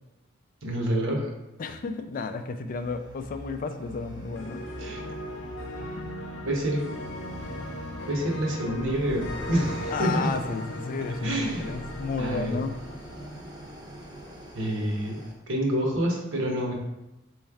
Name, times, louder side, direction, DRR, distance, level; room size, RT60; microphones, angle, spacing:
voice 1, 0.6-1.3 4.8-5.0 6.4-6.8 8.1-10.3 11.2-11.8 12.2-12.6 14.5-15.2 15.5-16.7, right 1 dB, 65° right, -1 dB, 1.0 m, -27 dB
voice 2, 1.6-4.6 6.0-6.1 9.9-12.7, left 4 dB, 40° left, 8 dB, 0.3 m, -32 dB
sound 1, 2.7-15.3, right 1 dB, 20° right, 0.7 m, -44 dB
sound 2, 4.4-14.4, left 1 dB, 65° left, 0.7 m, -39 dB
4.4 x 3.1 x 3.5 m, 0.96 s
head